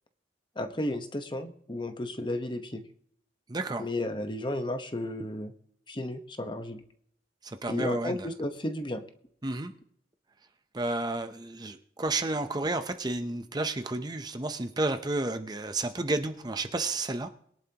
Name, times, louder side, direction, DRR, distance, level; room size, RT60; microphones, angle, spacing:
voice 1, 0.6-2.8 3.8-5.5 5.9-6.8 7.7-9.0, left 1 dB, 25° left, 8 dB, 1.1 m, -33 dB
voice 2, 3.5-3.9 7.4-8.3 9.4-9.7 10.7-17.3, right 2 dB, 25° right, 8 dB, 0.7 m, -31 dB
22.0 x 11.0 x 2.9 m, 0.67 s
head